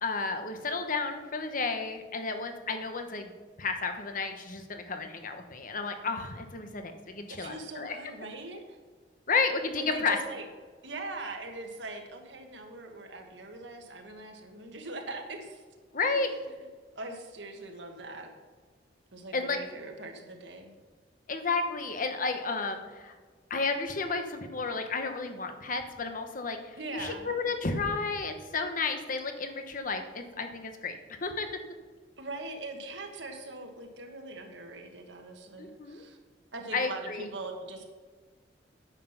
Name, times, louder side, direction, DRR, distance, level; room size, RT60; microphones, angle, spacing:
voice 1, 0.0-3.3 3.6-8.0 9.3-10.2 15.9-16.3 19.3-19.6 21.3-23.1 23.5-31.5 35.6-36.0 36.7-37.2, left 4 dB, 50° left, 6 dB, 1.1 m, -32 dB
voice 2, 7.3-8.8 9.8-10.4 10.8-15.6 16.1-16.3 16.9-18.3 19.1-20.8 26.8-27.3 32.2-36.2 36.5-37.8, right 2 dB, 90° right, 3 dB, 1.7 m, -41 dB
9.7 x 7.8 x 5.9 m, 1.5 s
head